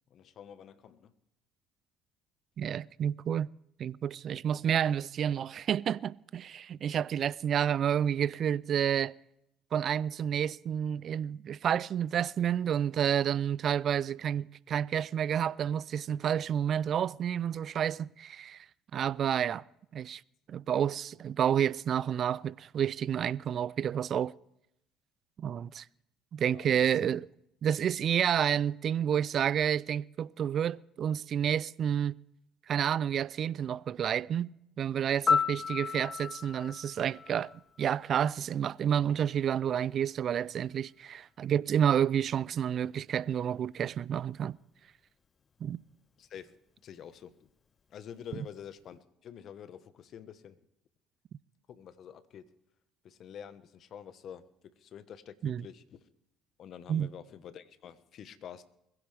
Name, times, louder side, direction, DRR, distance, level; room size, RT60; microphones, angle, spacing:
voice 1, 0.1-1.1 26.5-27.1 46.2-46.5 46.8-47.5 47.9-50.6 51.7-52.5 53.0-54.4 54.8-56.1 56.6-58.6, left 8 dB, 55° left, 1.2 m, -48 dB
voice 2, 2.6-3.5 3.8-9.1 9.7-18.6 18.9-19.6 19.9-20.2 20.5-24.3 25.4-25.8 26.3-27.2 27.6-32.2 32.7-37.5 37.8-44.6 45.6-45.8 55.4-55.6 56.9-57.1, right 9 dB, 50° right, 0.4 m, -30 dB
Piano, 35.3-38.2 46.3-46.5, left 6 dB, 40° left, 0.7 m, -32 dB
21.5 x 16.0 x 3.4 m
hypercardioid pair, 60°, 0 cm